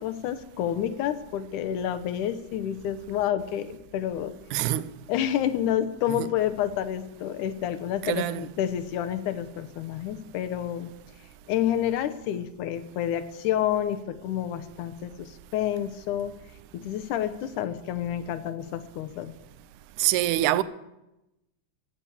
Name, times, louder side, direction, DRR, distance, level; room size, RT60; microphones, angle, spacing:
voice 1, 0.0-4.3 5.1-10.9 11.5-16.3 16.7-19.3, left 10 dB, 85° left, 2.3 m, -29 dB
voice 2, 4.5-4.9 6.1-6.3 8.0-8.5 20.0-20.6, right 14 dB, 80° right, 2.0 m, -25 dB
15.5 x 7.3 x 8.5 m
omnidirectional pair, 3.6 m